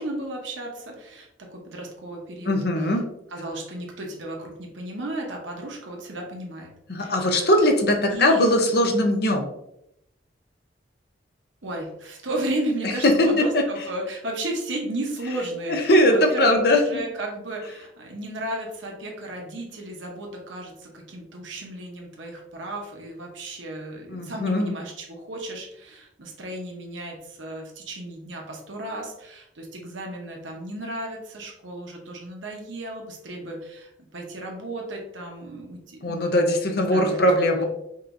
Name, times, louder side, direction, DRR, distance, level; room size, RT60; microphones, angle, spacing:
voice 1, 0.0-2.6 3.3-6.7 7.0-7.5 8.1-8.5 11.6-16.6 16.9-36.2 36.8-37.2, right 1 dB, 80° right, 0 dB, 0.9 m, -34 dB
voice 2, 2.5-3.1 6.9-9.5 13.0-13.6 15.7-17.0 24.1-24.7 36.0-37.6, left 1 dB, 55° left, 3 dB, 0.7 m, -20 dB
5.3 x 2.9 x 2.6 m, 0.80 s
head